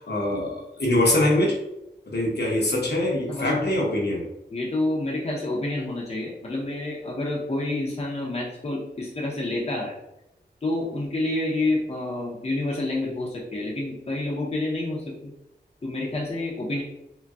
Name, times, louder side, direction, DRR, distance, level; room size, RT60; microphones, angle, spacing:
voice 1, 0.0-1.6 2.1-4.3, left 1 dB, 65° left, -2 dB, 0.9 m, -23 dB
voice 2, 3.3-3.7 4.5-9.9 10.6-15.3 15.8-16.8, left 2 dB, 35° left, -3 dB, 0.7 m, -28 dB
3.9 x 2.2 x 2.3 m, 0.88 s
wide cardioid pair, 60°, 18 cm